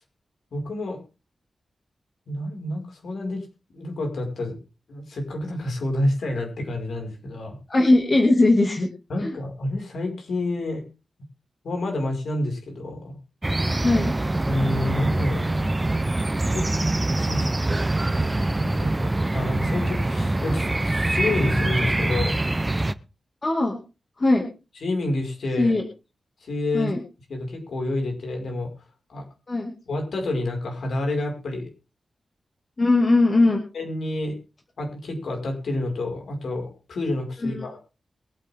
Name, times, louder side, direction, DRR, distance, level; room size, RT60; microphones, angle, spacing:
voice 1, 0.5-1.0 2.3-3.4 3.7-4.6 4.9-7.6 9.1-10.8 11.6-13.2 14.5-15.6 16.5-16.7 17.1-17.5 18.6-22.4 24.8-25.7 26.4-26.9 27.3-28.7 29.1-29.2 29.9-31.7 33.7-34.4 34.8-37.8, left 1 dB, 75° left, 2 dB, 5.5 m, -28 dB
voice 2, 7.7-8.9 9.2-9.3 13.8-14.1 23.4-23.8 24.2-24.5 25.6-25.8 26.7-27.0 29.5-29.7 32.8-33.6 37.4-37.7, left 2 dB, 30° left, 2 dB, 2.4 m, -19 dB
sound 1, 13.4-22.9, right 2 dB, 15° right, 0.6 m, -24 dB
22.5 x 8.9 x 3.7 m, 0.33 s
wide cardioid pair, 175°, 0 cm